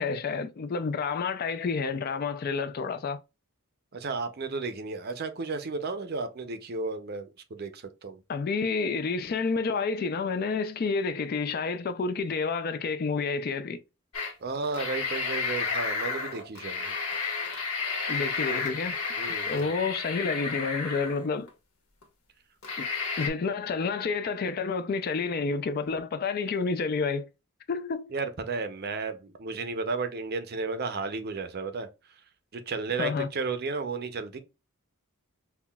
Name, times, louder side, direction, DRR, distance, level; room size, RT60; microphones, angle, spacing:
voice 1, 0.0-3.2 8.3-13.8 18.1-19.0 19.5-21.5 22.8-22.9 23.2-27.3 27.7-28.1 33.0-33.3, left 4 dB, 45° left, 0.3 m, -29 dB
voice 2, 3.9-8.2 14.4-16.9 19.2-19.7 28.1-31.9 32.5-34.4, right 4 dB, 45° right, 0.5 m, -33 dB
sound 1, 14.1-14.3 14.6-21.5 22.0-22.1 22.6-23.3, left 4 dB, 80° left, 1.4 m, -32 dB
5.6 x 2.3 x 2.3 m
head